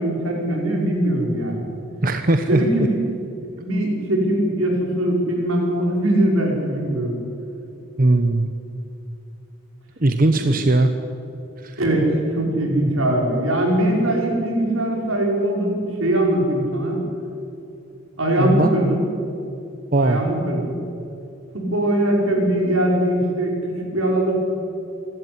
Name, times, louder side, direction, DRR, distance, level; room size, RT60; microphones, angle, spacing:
voice 1, 0.0-1.7 2.5-3.0 3.6-7.2 10.3-10.6 11.8-17.0 18.2-19.0 20.0-20.8 21.5-24.6, right 1 dB, 80° right, 0 dB, 5.6 m, -21 dB
voice 2, 2.0-2.6 8.0-8.5 10.0-10.9 11.6-11.7 18.4-18.7 19.9-20.2, right 2 dB, 40° right, 7 dB, 0.9 m, -18 dB
26.0 x 12.5 x 9.9 m, 2.7 s
head